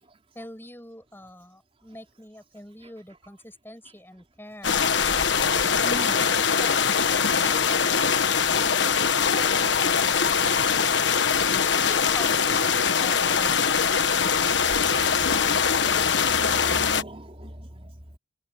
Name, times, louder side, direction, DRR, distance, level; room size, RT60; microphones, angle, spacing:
voice 1, 0.3-6.7 7.0-8.2 8.5-8.9 17.8-17.9, left 1 dB, 10° left, 6.1 m, -45 dB
sound 1, 4.6-17.0, left 6 dB, 75° left, 1.3 m, -22 dB
voice 2, 5.8-6.7 10.2-11.2 14.0-18.2, right 1 dB, 30° right, 4.3 m, -41 dB
head